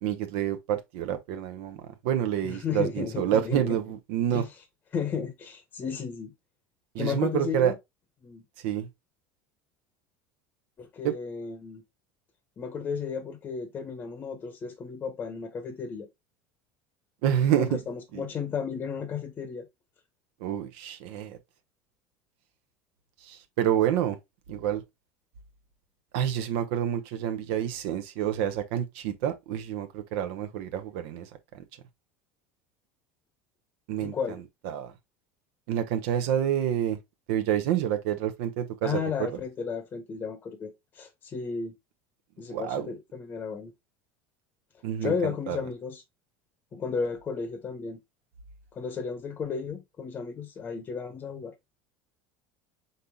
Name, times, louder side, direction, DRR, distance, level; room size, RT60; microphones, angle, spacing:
voice 1, 0.0-1.8 2.0-4.4 6.9-7.7 8.6-8.9 11.0-11.1 17.2-17.8 18.1-18.2 20.4-21.4 23.2-24.2 24.5-24.8 26.1-31.6 33.9-34.1 34.6-34.9 35.7-37.0 37.3-39.3 42.5-42.9 44.8-45.6, right 10 dB, 70° right, 0.7 m, -28 dB
voice 2, 2.4-3.8 4.3-4.5 4.9-6.3 7.0-7.8 8.2-8.4 10.8-11.8 12.6-16.1 17.5-19.7 34.0-34.4 38.8-41.7 42.4-43.7 45.0-46.0 46.7-48.0 48.7-51.5, left 6 dB, 25° left, 0.9 m, -33 dB
5.3 x 4.0 x 2.2 m
supercardioid pair, 145°, 7 cm